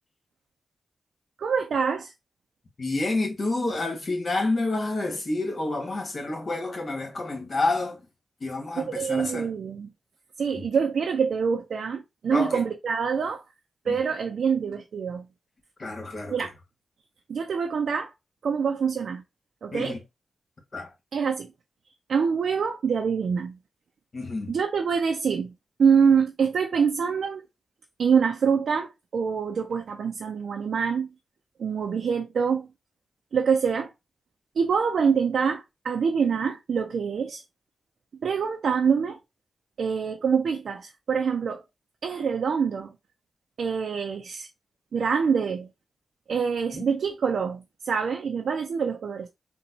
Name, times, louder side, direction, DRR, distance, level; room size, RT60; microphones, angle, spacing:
voice 1, 1.4-2.1 8.9-9.9 10.4-13.4 13.9-15.3 16.3-16.5 17.3-18.1 18.4-19.2 19.6-19.9 21.1-21.5 22.1-23.6 24.5-25.5 25.8-27.4 28.0-31.1 31.6-32.7 33.3-33.9 34.6-37.4 38.2-39.2 39.8-41.6 42.0-42.9 43.6-44.5 44.9-45.7 46.3-49.3, right 6 dB, 75° right, 0.4 m, -25 dB
voice 2, 2.8-8.0 8.4-9.5 10.5-10.7 12.3-12.6 13.8-14.0 15.8-16.5 19.7-20.0 20.7-20.9 24.1-24.6 46.7-46.8, left 2 dB, 55° left, 1.5 m, -29 dB
4.0 x 2.2 x 2.7 m
cardioid pair, 50°, 0 cm